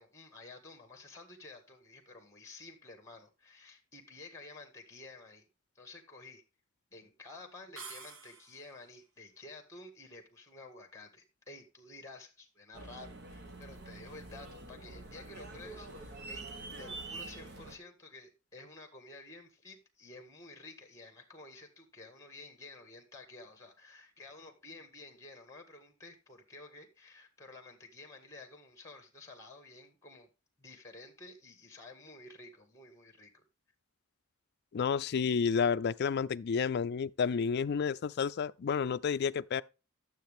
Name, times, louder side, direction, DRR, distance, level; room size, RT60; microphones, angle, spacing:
voice 1, 0.0-5.4 5.7-6.4 6.9-16.5 16.8-30.3 30.6-33.4, left 2 dB, 15° left, 1.8 m, -52 dB
sound 1, 7.8-8.8, right 5 dB, 75° right, 1.3 m, -48 dB
sound 2, 12.7-17.8, right 2 dB, 55° right, 1.6 m, -46 dB
voice 2, 34.7-39.6, left 6 dB, 50° left, 0.4 m, -30 dB
12.0 x 7.3 x 3.5 m
head